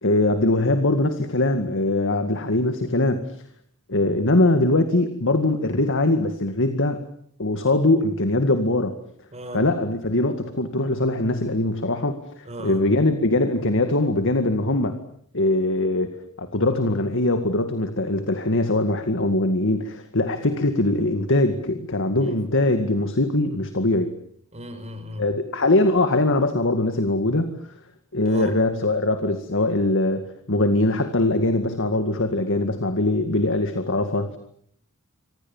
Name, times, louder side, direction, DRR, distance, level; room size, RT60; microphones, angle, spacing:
voice 1, 0.0-3.2 3.9-7.0 7.4-9.0 9.5-15.0 15.3-24.1 25.2-27.6 28.1-34.3, left 2 dB, 60° left, 8 dB, 2.1 m, -22 dB
voice 2, 9.3-9.6 12.5-12.8 22.2-22.4 24.5-25.2 28.3-28.5, right 1 dB, 30° right, 8 dB, 5.7 m, -36 dB
28.0 x 25.5 x 7.3 m, 0.65 s
head